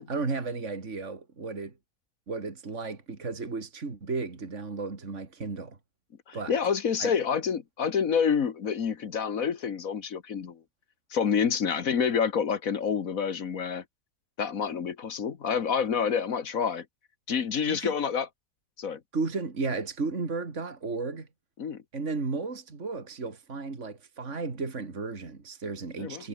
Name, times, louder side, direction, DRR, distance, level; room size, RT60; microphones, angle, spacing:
voice 1, 0.0-1.7 2.3-5.8 6.3-6.6 7.0-7.1 11.5-11.6 17.7-17.9 19.1-21.3 21.9-26.3, right 4 dB, 50° right, 3.0 m, -34 dB
voice 2, 6.3-10.6 11.1-13.8 14.4-16.8 17.3-18.3 18.8-19.0 21.6-21.8 26.0-26.2, left 6 dB, 65° left, 1.8 m, -28 dB
omnidirectional pair, 1.6 m